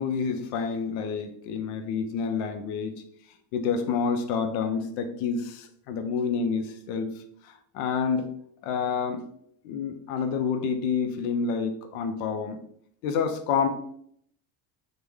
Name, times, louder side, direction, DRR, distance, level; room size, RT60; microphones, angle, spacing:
voice 1, 0.0-3.0 3.5-8.3 8.6-9.2 9.6-12.6 13.0-13.7, left 5 dB, 70° left, 0.5 m, -28 dB
3.2 x 2.1 x 3.4 m
cardioid pair, 175°, 44 cm